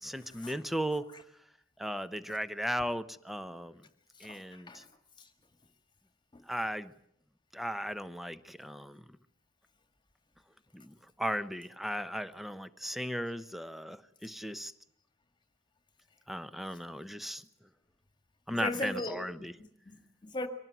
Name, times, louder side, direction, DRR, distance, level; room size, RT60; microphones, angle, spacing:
voice 1, 0.0-1.2 1.8-3.8 4.2-4.8 6.5-6.9 7.5-9.2 10.7-14.7 16.3-17.4 18.5-19.5, equal, ahead, 0.9 m, -36 dB
voice 2, 4.2-4.9 5.2-5.3 6.3-6.4 18.5-19.2 19.6-20.5, left 2 dB, 25° left, 1.9 m, -38 dB
24.5 x 18.5 x 9.2 m
head